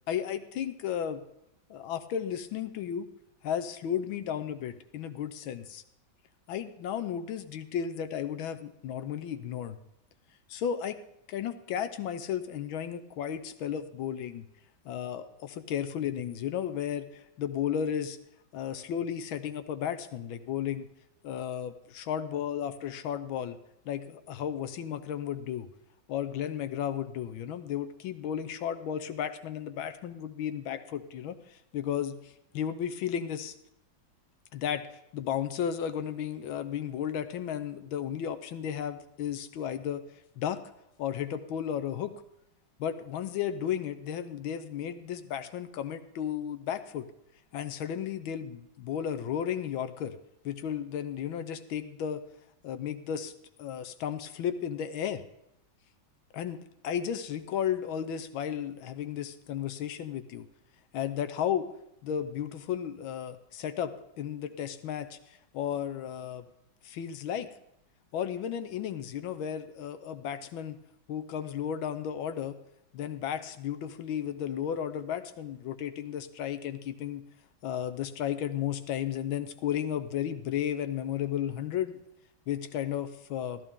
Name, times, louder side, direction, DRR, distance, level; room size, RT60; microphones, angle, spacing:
voice 1, 0.1-1.2 1.7-3.1 3.4-5.8 6.5-9.8 10.5-11.0 11.3-14.5 14.8-18.2 18.5-20.9 21.2-23.6 23.9-25.7 26.1-33.5 34.5-40.0 40.4-40.6 41.0-42.2 42.8-47.1 47.5-50.2 50.4-52.2 52.6-53.3 53.6-55.2 56.3-60.5 60.9-61.7 62.0-66.4 66.8-67.5 68.1-70.8 71.1-72.6 72.9-77.2 77.6-82.0 82.5-83.6, left 9 dB, 80° left, 10 dB, 1.5 m, -34 dB
14.0 x 13.5 x 3.6 m, 0.81 s
omnidirectional pair, 2.2 m